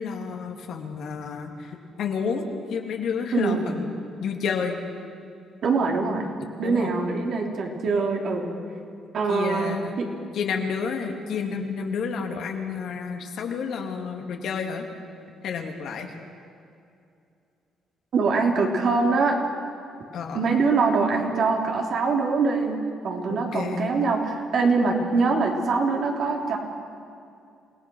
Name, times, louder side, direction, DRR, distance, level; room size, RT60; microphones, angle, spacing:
voice 1, 0.0-3.9 4.2-4.8 6.6-7.0 9.3-10.0 10.3-14.9 15.4-16.1 20.1-20.4 23.3-23.9, left 6 dB, 70° left, 2 dB, 2.6 m, -30 dB
voice 2, 3.3-3.7 5.6-6.3 6.6-8.5 9.1-10.1 18.1-19.4 20.3-22.8 23.0-26.6, right 4 dB, 60° right, 0 dB, 3.7 m, -23 dB
28.0 x 17.5 x 6.4 m, 2.5 s
cardioid pair, 95°, 0 cm